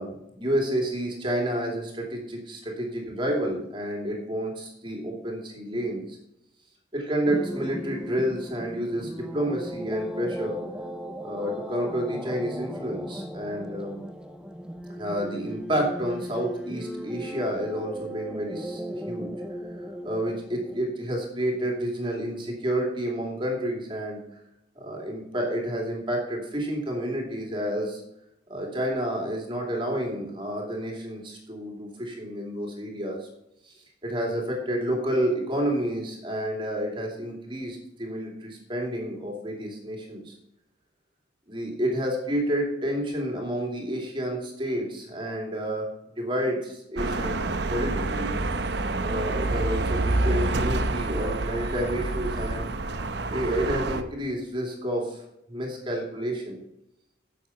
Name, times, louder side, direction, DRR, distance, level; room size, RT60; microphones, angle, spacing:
voice 1, 0.0-6.2 6.9-10.6 11.2-14.0 14.9-19.3 19.8-24.2 24.8-28.0 28.5-33.3 33.6-40.4 41.5-47.4 47.7-48.3 49.0-53.0 53.3-55.2 55.5-56.6, equal, 25° right, 0 dB, 2.6 m, -30 dB
sound 1, 7.3-20.8, equal, 5° right, 0.6 m, -37 dB
sound 2, 47.0-54.0, right 2 dB, 60° right, 0.8 m, -27 dB
10.0 x 7.2 x 5.8 m, 0.81 s
head